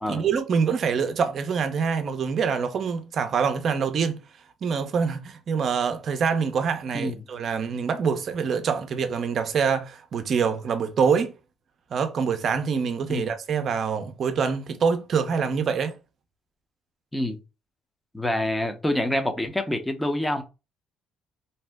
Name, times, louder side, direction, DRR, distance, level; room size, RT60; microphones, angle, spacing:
voice 1, 0.1-4.2 4.6-11.3 11.9-15.9, right 6 dB, 55° right, 0.5 m, -25 dB
voice 2, 6.9-7.2 13.1-13.2 17.1-17.4 18.1-20.4, left 1 dB, 10° left, 0.6 m, -26 dB
2.7 x 2.0 x 3.4 m
supercardioid pair, 65°, 0 cm